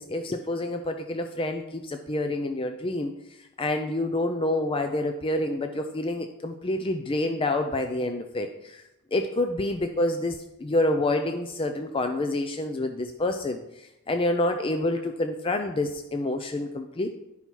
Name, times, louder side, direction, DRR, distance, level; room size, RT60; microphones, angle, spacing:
voice 1, 0.0-3.1 3.4-8.8 9.1-17.1, left 2 dB, 25° left, 6 dB, 0.4 m, -28 dB
11.0 x 5.6 x 4.5 m, 0.90 s
head